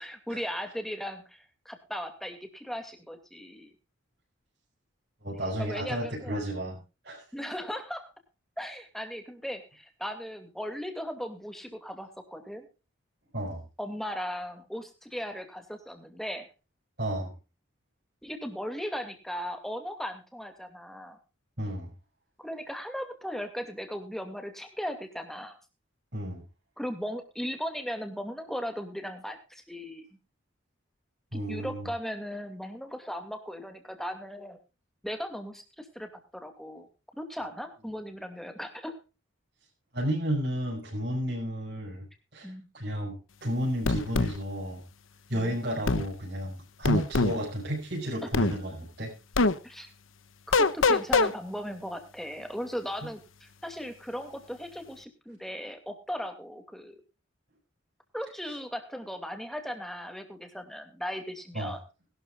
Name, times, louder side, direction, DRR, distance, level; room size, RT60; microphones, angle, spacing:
voice 1, 0.0-3.7 5.6-6.4 6.7-6.8 7.3-8.1 8.6-12.7 13.8-16.5 18.2-21.2 22.4-25.5 26.8-30.1 31.3-34.6 35.0-36.9 37.2-39.0 42.4-42.7 49.6-49.9 50.6-57.0 58.1-61.8, equal, ahead, 6 dB, 2.4 m, -37 dB
voice 2, 5.2-6.8 7.0-7.2 13.3-13.6 17.0-17.3 21.6-21.9 26.1-26.4 31.3-31.9 39.9-42.0 42.3-44.8 45.3-49.1 53.0-53.1 61.5-61.8, equal, 50° right, -6 dB, 6.1 m, -32 dB
sound 1, 43.9-44.3 45.9-46.1 46.8-47.4 48.3-48.5 49.4-49.5 50.5-51.3, left 3 dB, 80° left, 0.9 m, -23 dB
21.0 x 12.5 x 2.5 m, 0.31 s
head